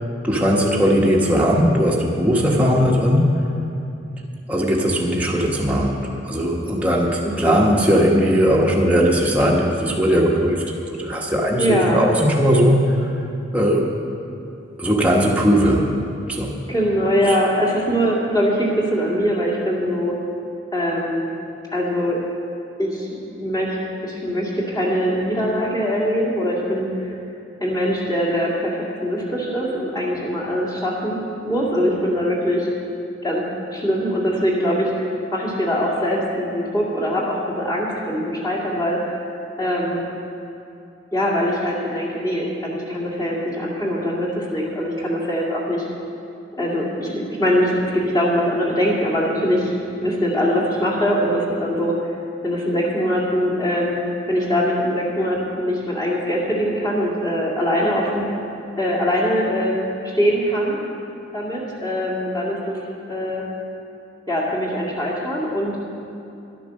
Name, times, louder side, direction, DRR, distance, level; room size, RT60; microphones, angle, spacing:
voice 1, 0.2-3.4 4.5-13.0 13.5-13.9 14.8-16.0 16.3-16.6 17.3-17.4, equal, 5° right, -3 dB, 1.2 m, -18 dB
voice 2, 2.5-2.8 7.2-7.6 11.6-12.1 16.7-20.1 20.7-21.2 21.7-22.2 22.8-23.8 24.0-27.2 27.6-31.2 31.5-32.7 33.2-33.4 33.7-39.2 39.6-40.1 41.1-45.8 46.5-49.7 50.0-52.1 52.4-54.0 54.3-58.3 58.8-59.9 60.2-60.8 61.3-62.8 63.1-63.5 64.3-65.8, equal, 20° left, -5 dB, 2.1 m, -22 dB
11.5 x 9.1 x 6.3 m, 2.7 s
head